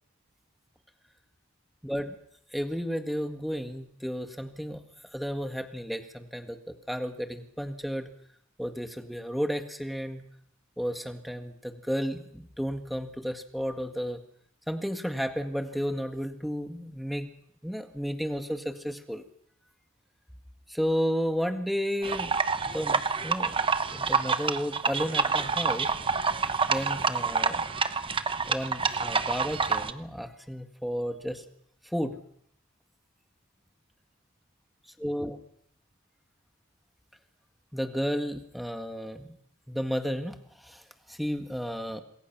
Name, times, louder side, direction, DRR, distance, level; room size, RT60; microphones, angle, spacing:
voice 1, 1.8-2.2 2.5-4.8 5.1-8.1 8.6-10.3 10.8-14.2 14.7-17.3 17.6-19.2 20.7-22.3 22.6-23.6 23.9-25.9 26.7-27.6 28.4-31.4 31.8-32.2 35.0-35.4 37.7-39.4 39.7-42.0, equal, ahead, 6 dB, 1.8 m, -32 dB
sound 1, 22.0-29.9, right 5 dB, 25° right, 1.0 m, -27 dB
27.0 x 21.5 x 6.1 m, 0.70 s
head